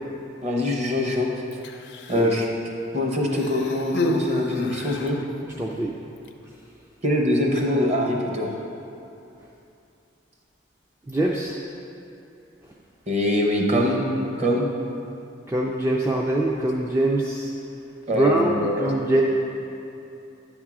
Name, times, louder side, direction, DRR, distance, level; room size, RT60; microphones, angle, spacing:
voice 1, 0.4-1.3 2.1-2.5 2.9-5.2 7.0-8.5 13.1-14.0 14.4-14.7 18.1-18.9, left 1 dB, 35° right, 0 dB, 0.9 m, -23 dB
Human voice, 1.5-2.4 3.3-5.3 6.2-6.3, left 1 dB, 60° left, 0.4 m, -30 dB
voice 2, 5.6-5.9 11.1-11.6 15.5-17.5 18.1-19.2, right 1 dB, 15° right, -2 dB, 0.3 m, -23 dB
9.8 x 3.6 x 6.0 m, 2.7 s
head